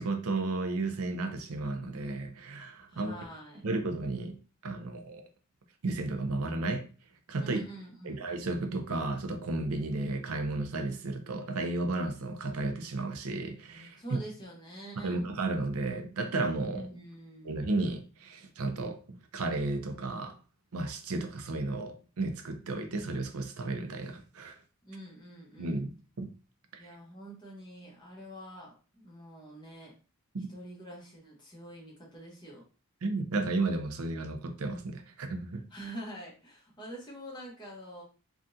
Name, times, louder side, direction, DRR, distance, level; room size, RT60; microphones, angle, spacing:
voice 1, 0.0-3.2 3.6-4.4 4.6-5.2 5.8-6.8 7.3-7.6 8.0-14.2 15.0-16.9 17.4-19.0 19.3-20.3 20.7-24.6 25.6-26.3 30.3-30.5 33.0-35.6, right 2 dB, 85° right, 0.5 m, -33 dB
voice 2, 2.9-3.6 7.4-8.2 14.0-15.3 16.7-17.6 24.8-25.8 26.8-29.9 30.5-32.6 35.7-38.0, right 1 dB, 20° left, 1.0 m, -45 dB
3.6 x 2.3 x 2.7 m
head